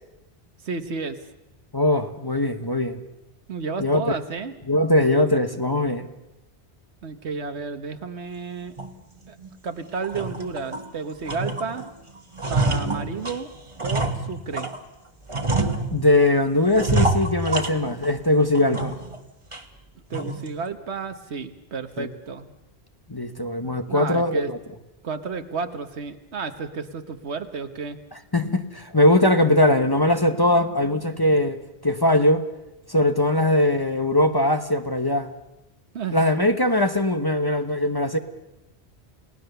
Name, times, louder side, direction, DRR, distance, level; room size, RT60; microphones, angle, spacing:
voice 1, 0.6-1.2 3.5-4.5 7.0-8.8 9.3-9.4 9.6-11.8 12.5-13.5 13.8-14.7 20.1-22.5 23.9-24.5 25.0-28.0 35.9-36.5, right 5 dB, 80° right, 8 dB, 1.5 m, -32 dB
voice 2, 1.7-3.0 3.8-4.2 4.7-6.1 15.9-19.0 22.0-22.1 23.1-24.6 28.3-31.6 31.8-32.4 32.9-35.3 36.1-38.2, left 1 dB, 20° left, 7 dB, 1.2 m, -21 dB
sound 1, 8.8-8.9 9.4-9.5 10.0-10.9 11.3-11.9 12.2-14.8 15.3-16.3 16.7-18.2 18.5-19.2 19.5-19.6 20.1-20.5, right 2 dB, 30° right, 1.5 m, -26 dB
29.5 x 18.0 x 6.9 m, 0.93 s
omnidirectional pair, 1.1 m